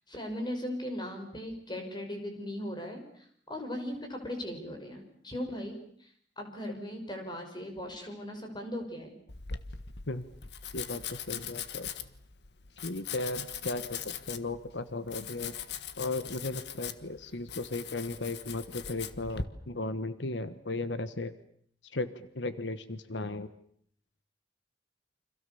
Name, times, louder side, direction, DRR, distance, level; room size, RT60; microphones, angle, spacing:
voice 1, 0.1-9.1, left 1 dB, 25° left, 4 dB, 6.2 m, -38 dB
Domestic sounds home sounds, 9.3-19.4, left 7 dB, 65° left, 1.6 m, -41 dB
voice 2, 10.7-11.9 12.8-15.6 16.0-21.3 21.9-23.5, left 2 dB, 85° left, 12 dB, 1.4 m, -36 dB
29.5 x 26.5 x 7.1 m, 0.62 s
head